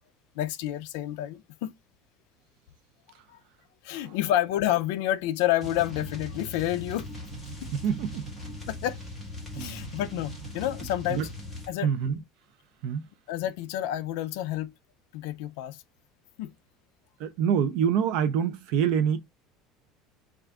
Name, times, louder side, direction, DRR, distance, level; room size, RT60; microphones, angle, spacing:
voice 1, 0.4-1.7 3.8-7.1 7.6-7.7 8.7-9.0 9.5-11.3 11.7-11.9 13.3-14.7 15.1-15.8 16.4-16.5, left 13 dB, 70° left, 0.3 m, -29 dB
sound 1, 5.6-11.7, left 1 dB, 5° left, 1.4 m, -40 dB
voice 2, 7.7-8.3 9.5-10.0 11.1-11.3 11.8-12.2 12.8-13.0 17.2-19.2, right 8 dB, 55° right, 0.5 m, -26 dB
3.5 x 2.4 x 3.4 m
cardioid pair, 180°, 0 cm